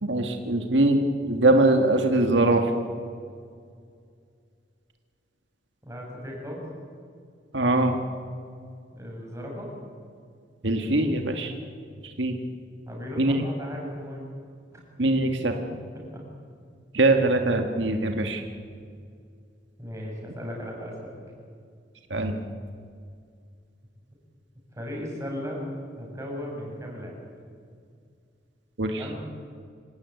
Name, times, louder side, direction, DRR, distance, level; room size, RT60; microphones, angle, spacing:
voice 1, 0.0-2.7 7.5-8.0 10.6-11.5 12.2-12.4 13.2-13.4 15.0-15.5 16.9-18.4 22.1-22.4 28.8-29.0, right 2 dB, 80° right, 5 dB, 1.8 m, -22 dB
voice 2, 5.8-6.6 8.9-9.7 12.9-14.3 14.7-14.8 15.9-16.0 19.8-21.2 24.7-25.6 26.0-27.1 29.0-29.2, equal, 15° right, -2 dB, 7.1 m, -36 dB
26.0 x 16.5 x 9.4 m, 2.2 s
head